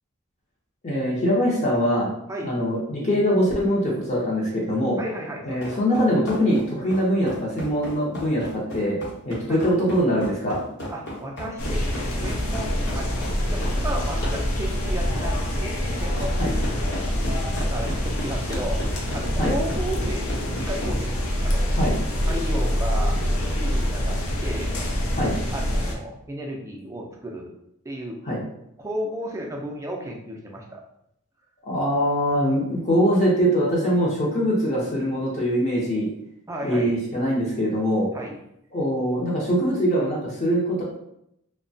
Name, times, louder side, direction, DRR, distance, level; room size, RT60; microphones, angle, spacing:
voice 1, 0.8-2.1 2.4-5.0 5.4-8.4 8.7-9.0 9.2-10.6 16.4-16.5 19.4-19.5 21.7-22.0 25.1-25.3 28.3-28.4 31.6-36.1 36.6-38.1 38.7-40.8, equal, 30° left, -5 dB, 0.6 m, -22 dB
voice 2, 5.0-5.8 9.5-9.6 10.9-13.1 13.5-17.0 17.6-20.3 20.5-21.1 21.4-21.8 22.2-23.2 23.4-24.8 25.5-27.5 27.8-28.2 28.8-30.8 36.5-37.0 38.1-38.4, equal, 15° right, 0 dB, 0.3 m, -34 dB
sound 1, 5.6-13.8 14.2-14.4 15.1-15.3 16.2-16.3 16.6-20.9, left 1 dB, 55° left, 0.9 m, -35 dB
sound 2, 11.6-25.9, equal, 80° left, 0.5 m, -25 dB
2.8 x 2.1 x 2.6 m, 0.77 s
head